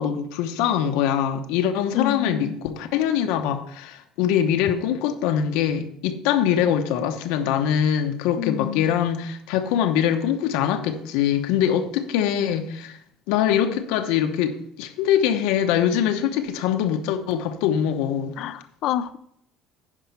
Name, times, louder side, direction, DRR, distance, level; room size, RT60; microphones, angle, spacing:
voice 1, 0.0-13.0 13.3-18.3, left 9 dB, 90° left, 6 dB, 0.9 m, -23 dB
voice 2, 1.9-2.6 8.4-8.9 18.4-19.2, left 11 dB, 55° left, 12 dB, 0.4 m, -28 dB
10.0 x 5.5 x 5.7 m, 0.72 s
cardioid pair, 155°, 0 cm